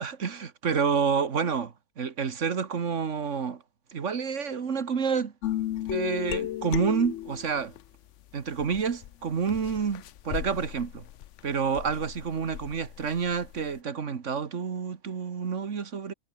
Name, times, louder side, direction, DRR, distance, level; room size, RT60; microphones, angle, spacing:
voice 1, 0.0-3.6 3.9-5.3 5.9-7.7 8.3-11.0 11.4-16.1, right 6 dB, 60° right, 1.7 m, -29 dB
sound 1, 5.4-7.8 8.5-13.8, left 13 dB, 65° left, 0.9 m, -35 dB
omnidirectional pair, 1.4 m